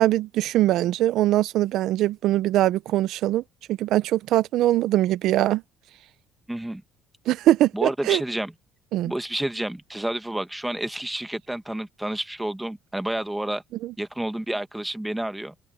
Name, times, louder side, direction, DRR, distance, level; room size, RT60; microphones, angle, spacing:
voice 1, 0.0-3.4 3.7-5.6 7.3-8.2 8.9-9.1 13.8-13.9, right 14 dB, 70° right, 0.7 m, -22 dB
voice 2, 6.5-6.8 7.7-8.5 9.0-13.6 14.0-15.5, right 1 dB, 5° right, 1.4 m, -30 dB
open air
cardioid pair, 100°, 0 cm